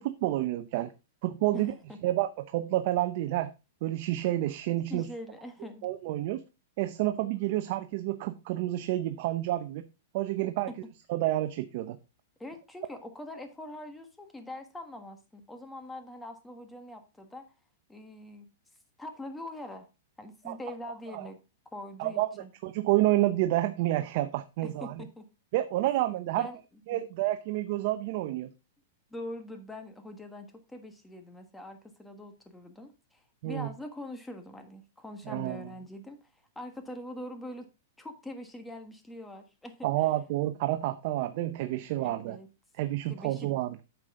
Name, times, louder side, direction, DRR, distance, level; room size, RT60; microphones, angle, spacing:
voice 1, 0.0-0.9 1.2-1.7 2.0-3.5 3.8-5.1 5.8-6.4 6.8-9.8 10.1-10.7 11.1-12.0 20.4-20.6 21.1-21.3 22.0-25.0 25.5-26.5 26.9-28.5 33.4-33.7 35.3-35.6 39.8-42.4 42.8-43.8, right 15 dB, 45° right, 9 dB, 0.6 m, -29 dB
voice 2, 4.9-5.9 12.4-17.4 17.9-18.5 19.0-19.9 20.2-21.4 21.7-22.5 24.6-25.2 26.4-26.6 26.9-27.0 29.1-37.7 38.0-39.9 42.0-42.5 43.1-43.5, left 1 dB, 5° left, 6 dB, 1.4 m, -43 dB
9.1 x 6.8 x 3.7 m, 0.28 s
hypercardioid pair, 155°, 0 cm